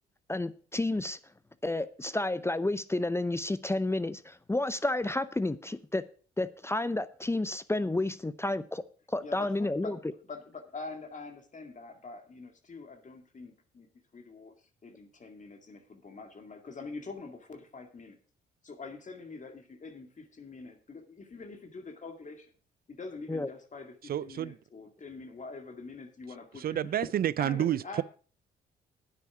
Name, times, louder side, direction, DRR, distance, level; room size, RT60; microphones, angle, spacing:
voice 1, 0.3-1.2 1.6-6.0 6.4-8.8 9.1-10.0 23.3-23.5, left 2 dB, 15° left, 0.7 m, -31 dB
voice 2, 9.2-13.9 14.1-18.2 18.6-22.5 22.9-26.8 27.4-28.0, left 3 dB, 40° left, 2.1 m, -45 dB
voice 3, 24.0-24.6 26.5-28.0, right 11 dB, 50° right, 0.4 m, -29 dB
9.8 x 8.2 x 6.0 m
supercardioid pair, 60°, 20 cm